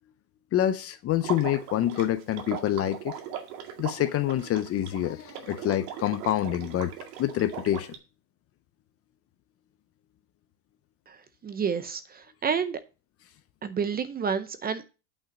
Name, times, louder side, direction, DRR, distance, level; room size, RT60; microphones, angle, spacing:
voice 1, 0.5-3.1 3.8-6.9 7.2-7.9, left 12 dB, 30° left, 0.6 m, -27 dB
Water / Liquid, 1.2-8.0, right 8 dB, 65° right, 2.2 m, -39 dB
voice 2, 11.4-12.8 13.6-14.9, right 6 dB, 20° right, 0.6 m, -29 dB
8.8 x 5.7 x 5.0 m
supercardioid pair, 120°, 49 cm